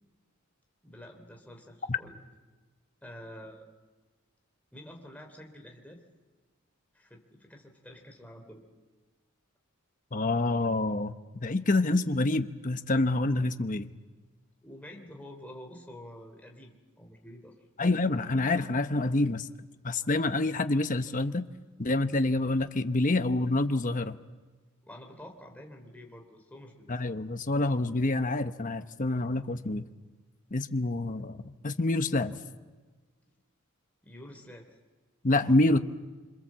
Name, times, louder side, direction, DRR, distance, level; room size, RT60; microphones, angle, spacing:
voice 1, 0.8-2.2 3.0-3.6 4.7-6.0 6.9-8.6 14.6-17.6 24.8-27.0 34.0-34.8, left 1 dB, 5° left, 2 dB, 3.2 m, -48 dB
voice 2, 10.1-13.9 17.8-19.5 19.8-21.4 21.8-24.2 26.9-29.8 30.5-32.4 35.2-35.8, left 2 dB, 35° left, 9 dB, 1.0 m, -27 dB
26.5 x 26.0 x 7.5 m, 1.3 s
head